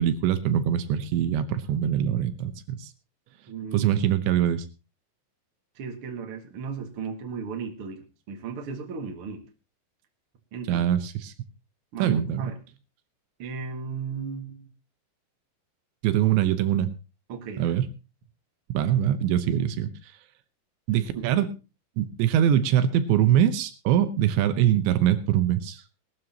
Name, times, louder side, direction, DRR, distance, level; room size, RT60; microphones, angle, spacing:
voice 1, 0.0-2.9 3.7-4.7 10.7-11.3 12.0-12.4 16.0-16.9 17.6-17.9 18.7-19.9 20.9-21.5 22.0-25.8, right 10 dB, 75° right, 11 dB, 3.0 m, -23 dB
voice 2, 3.5-3.9 5.7-9.4 10.5-10.8 11.9-12.6 13.4-14.7 17.3-17.8 21.1-21.3, right 5 dB, 55° right, 4 dB, 1.5 m, -35 dB
20.0 x 13.0 x 2.9 m, 0.30 s
omnidirectional pair, 5.4 m